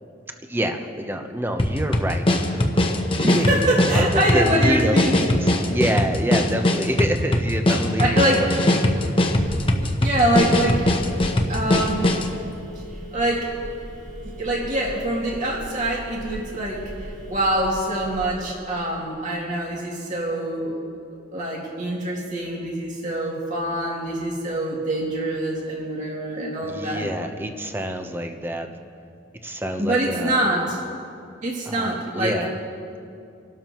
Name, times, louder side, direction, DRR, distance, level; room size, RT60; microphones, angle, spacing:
voice 1, 0.5-2.6 3.2-9.2 26.6-28.7 29.4-30.7 31.7-32.5, equal, 10° right, 5 dB, 0.8 m, -27 dB
sound 1, 1.6-12.3, left 1 dB, 30° left, 1.0 m, -21 dB
voice 2, 3.2-5.5 8.0-8.6 9.3-10.8 11.5-12.1 13.1-13.5 14.4-16.8 17.3-20.8 21.3-27.1 29.8-30.8 31.4-32.4, right 1 dB, 40° right, -4 dB, 2.6 m, -24 dB
Telephone, 9.3-18.3, equal, 70° right, 3.3 m, -38 dB
28.5 x 12.5 x 3.0 m, 2.5 s
head